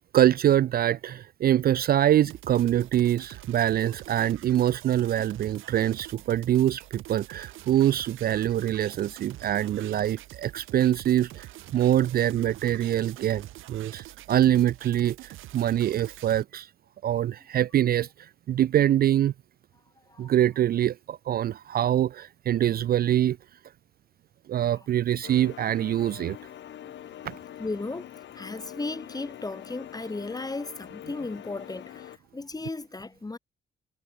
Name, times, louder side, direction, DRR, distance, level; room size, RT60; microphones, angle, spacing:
voice 1, 0.1-16.7 17.0-19.3 20.2-23.4 24.5-26.4 27.2-27.4, right 11 dB, 50° right, 0.4 m, -24 dB
sound 1, 2.2-16.4, right 15 dB, 90° right, 3.9 m, -45 dB
sound 2, 25.2-32.2, left 11 dB, 65° left, 1.2 m, -44 dB
voice 2, 26.8-33.4, left 3 dB, 20° left, 2.5 m, -36 dB
cardioid pair, 90°, 20 cm